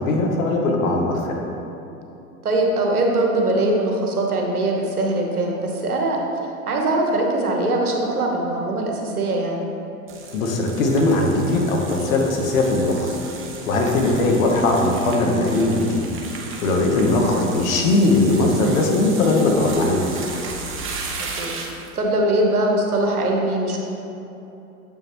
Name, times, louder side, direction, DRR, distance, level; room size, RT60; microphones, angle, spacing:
voice 1, 0.0-1.4 10.3-13.2 13.7-16.1 16.6-20.2, left 2 dB, 65° left, 1 dB, 1.2 m, -19 dB
voice 2, 2.4-6.2 6.7-9.6 21.2-23.8, right 1 dB, 85° right, 0 dB, 1.1 m, -22 dB
sound 1, 10.1-21.9, right 4 dB, 30° right, 1.0 m, -35 dB
8.0 x 5.5 x 3.0 m, 2.9 s
figure-of-eight pair, 90°, 43 cm